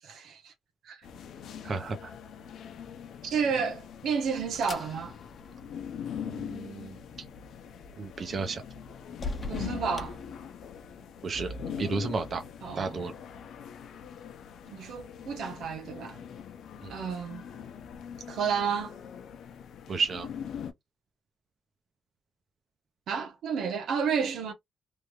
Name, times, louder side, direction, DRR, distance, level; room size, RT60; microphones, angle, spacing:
voice 1, 0.0-0.5 0.8-1.1 3.2-5.1 9.5-10.2 12.6-13.0 14.7-16.2 16.9-17.4 18.3-18.9 23.1-24.5, right 6 dB, 90° right, 1.0 m, -31 dB
sound 1, 1.0-20.7, left 7 dB, 85° left, 0.6 m, -42 dB
voice 2, 1.6-2.1 6.2-7.0 8.0-8.6 11.2-11.5 11.8-12.4 12.8-13.1 16.8-17.0 19.9-20.3, right 4 dB, 45° right, 0.6 m, -32 dB
sound 2, 3.9-11.0, left 3 dB, 30° left, 1.0 m, -44 dB
3.4 x 2.3 x 3.0 m
cardioid pair, 130°, 0 cm